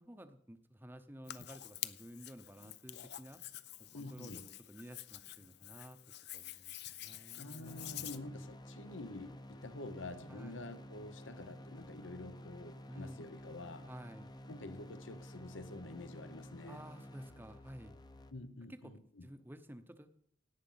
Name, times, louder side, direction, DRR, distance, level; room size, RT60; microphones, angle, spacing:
voice 1, 0.0-3.4 3.8-6.0 6.3-8.3 10.3-10.6 12.9-13.2 13.9-14.3 16.7-18.0 18.7-18.9 19.2-20.1, equal, 10° right, 10 dB, 0.8 m, -53 dB
Hands, 1.3-8.2, left 13 dB, 60° left, 0.6 m, -48 dB
voice 2, 3.9-4.5 7.3-13.9 14.5-16.8 18.3-19.3, left 2 dB, 80° left, 11 dB, 1.0 m, -48 dB
sound 1, 7.6-18.3, left 1 dB, 20° left, 0.7 m, -52 dB
17.5 x 9.0 x 5.7 m, 0.68 s
head